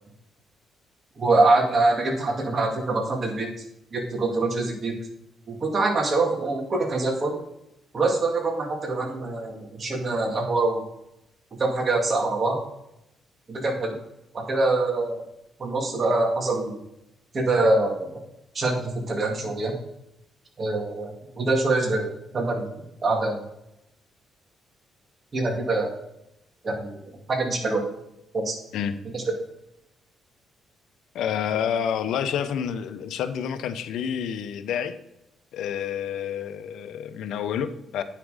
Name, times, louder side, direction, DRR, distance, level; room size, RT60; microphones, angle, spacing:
voice 1, 1.2-3.5 3.9-4.9 5.5-7.4 7.9-10.8 11.6-12.6 13.5-13.9 14.3-15.2 15.6-16.8 17.3-18.2 18.5-19.7 20.6-21.1 21.3-22.6 23.0-23.4 25.3-25.9 26.6-26.9 27.3-27.8 28.3-28.6 29.1-29.2, right 2 dB, 40° right, 2 dB, 2.2 m, -24 dB
voice 2, 31.1-34.9 35.5-38.0, left 8 dB, 80° left, 11 dB, 0.7 m, -28 dB
9.1 x 5.9 x 4.9 m, 0.84 s
cardioid pair, 90°, 0 cm